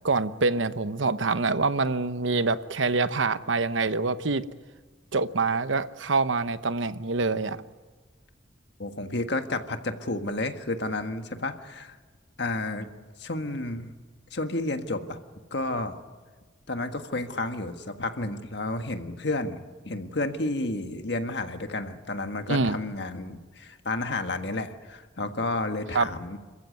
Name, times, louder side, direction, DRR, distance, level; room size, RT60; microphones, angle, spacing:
voice 1, 0.0-4.4 5.1-7.6 22.5-22.8 25.9-26.1, right 3 dB, 85° right, 13 dB, 0.9 m, -25 dB
voice 2, 8.8-12.0 12.4-12.9 13.2-13.9 14.3-15.2 15.5-16.0 16.7-19.6 19.8-26.4, left 2 dB, 60° left, 7 dB, 1.6 m, -31 dB
27.5 x 15.0 x 9.3 m, 1.4 s
head